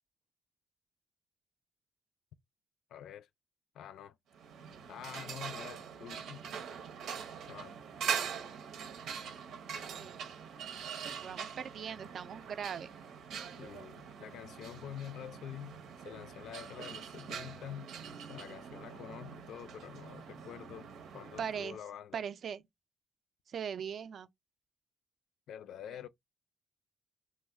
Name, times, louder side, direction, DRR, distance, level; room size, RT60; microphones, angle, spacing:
voice 1, 2.9-3.3 3.7-4.2 4.9-6.4 7.5-7.8 13.6-17.9 18.3-22.2 25.5-26.1, left 10 dB, 80° left, 0.3 m, -47 dB
sound 1, 4.3-21.8, right 7 dB, 85° right, 0.7 m, -43 dB
voice 2, 9.7-10.2 11.2-12.9 21.4-21.8 22.1-22.6 23.5-24.3, right 7 dB, 50° right, 0.3 m, -40 dB
3.1 x 2.0 x 3.4 m
cardioid pair, 160°, 0 cm